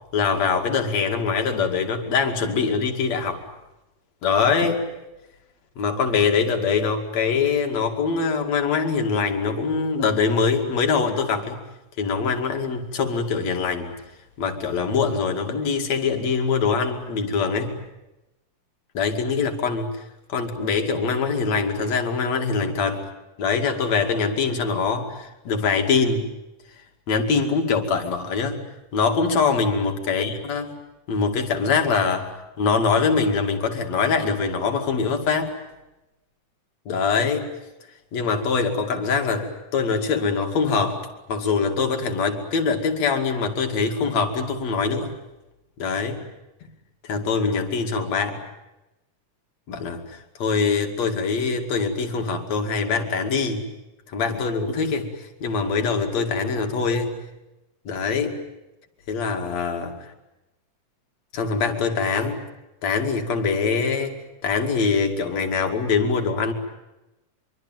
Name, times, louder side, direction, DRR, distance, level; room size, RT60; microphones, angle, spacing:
voice 1, 0.1-3.4 4.2-4.8 5.8-11.6 12.0-14.0 14.4-17.8 18.9-20.0 20.3-23.0 23.4-26.3 27.1-28.6 28.9-30.7 31.1-32.3 32.6-35.5 36.9-37.5 38.1-41.0 41.3-45.1 45.8-46.2 46.6-46.7 47.0-48.4 49.7-53.7 54.1-57.1 57.9-58.4 59.1-60.0 61.3-62.4 62.8-64.2 64.4-66.5, left 5 dB, 60° left, 4 dB, 3.6 m, -23 dB
24.5 x 24.0 x 9.3 m, 0.98 s
omnidirectional pair, 3.6 m